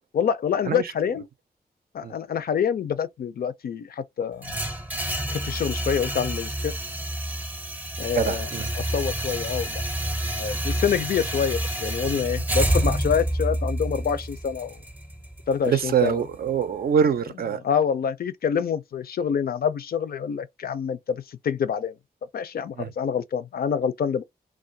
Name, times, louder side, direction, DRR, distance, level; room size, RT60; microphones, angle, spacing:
voice 1, 0.1-1.2 1.9-4.6 5.3-6.7 8.0-8.5 8.8-9.8 10.2-14.8 15.5-16.2 17.6-21.9 22.3-24.2, left 7 dB, 70° left, 0.4 m, -26 dB
sound 1, 4.4-16.5, right 1 dB, 10° right, 0.5 m, -28 dB
voice 2, 8.1-8.7 10.7-10.8 15.6-17.6 22.8-22.9, right 7 dB, 70° right, 0.4 m, -24 dB
2.3 x 2.2 x 2.6 m
cardioid pair, 65°, 16 cm